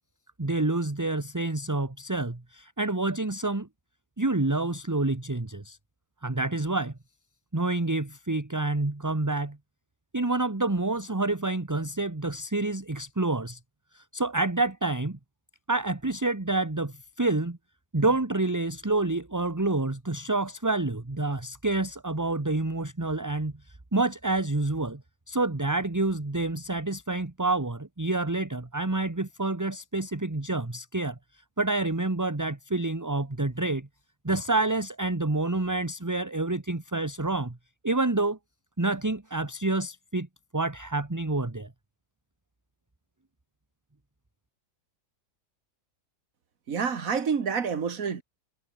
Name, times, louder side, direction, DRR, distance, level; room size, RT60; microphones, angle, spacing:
voice 1, 0.4-3.7 4.2-5.8 6.2-6.9 7.5-9.6 10.1-13.6 13.9-15.2 15.7-17.6 17.9-23.5 23.9-25.0 25.3-31.2 31.6-33.9 34.2-37.6 37.8-38.4 38.8-40.3 40.5-41.7, right 2 dB, 10° right, 1.1 m, -28 dB
voice 2, 46.7-48.2, right 6 dB, 55° right, 2.0 m, -28 dB
omnidirectional pair, 1.8 m